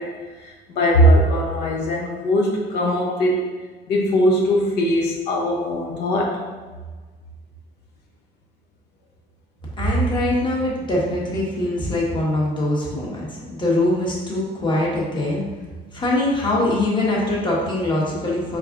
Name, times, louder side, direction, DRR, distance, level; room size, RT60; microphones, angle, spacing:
voice 1, 0.0-3.5 3.9-6.4, equal, 85° left, -2 dB, 0.8 m, -20 dB
voice 2, 9.8-15.4 15.9-18.6, left 1 dB, 30° left, -5 dB, 1.2 m, -22 dB
4.5 x 3.6 x 2.5 m, 1.4 s
cardioid pair, 110°, 17 cm